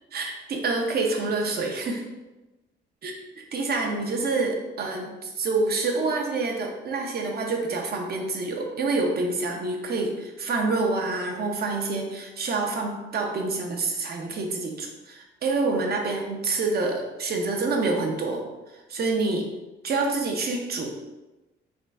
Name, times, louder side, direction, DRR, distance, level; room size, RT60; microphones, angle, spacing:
voice 1, 0.1-2.0 3.0-18.4 18.9-19.5 19.8-20.9, right 3 dB, 50° right, 2 dB, 0.7 m, -27 dB
3.7 x 2.2 x 3.6 m, 1.1 s
cardioid pair, 90°, 20 cm